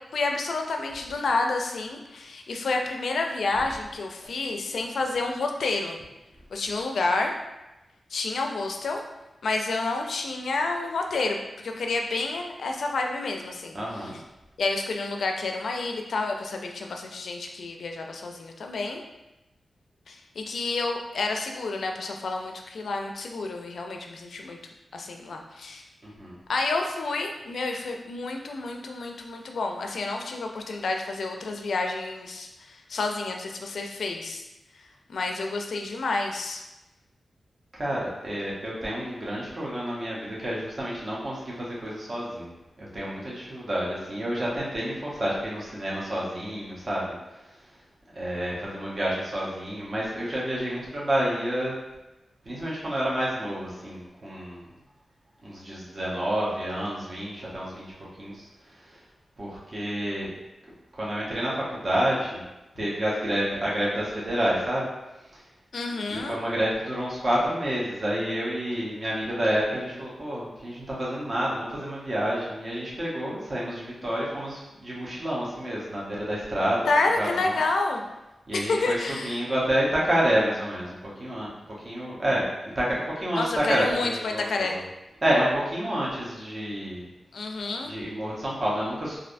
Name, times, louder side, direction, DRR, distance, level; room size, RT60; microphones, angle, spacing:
voice 1, 0.1-6.0 6.5-7.3 8.1-9.0 9.4-11.4 11.6-14.2 14.6-19.0 20.1-24.6 24.9-25.8 26.5-34.4 35.1-36.6 65.7-66.4 76.9-78.0 78.5-79.4 83.4-84.8 87.3-87.9, left 3 dB, 80° left, 3 dB, 0.3 m, -29 dB
voice 2, 13.7-14.2 26.0-26.4 37.8-42.5 42.8-47.2 48.1-51.7 52.4-54.7 55.4-57.9 58.2-58.5 59.4-60.3 60.9-62.4 62.8-64.9 66.1-76.8 77.2-77.6 78.5-81.5 81.8-82.5 82.7-84.8 85.2-87.1 87.9-89.2, equal, 40° right, -6 dB, 0.8 m, -29 dB
3.2 x 2.5 x 2.5 m, 0.99 s
wide cardioid pair, 110°, 0 cm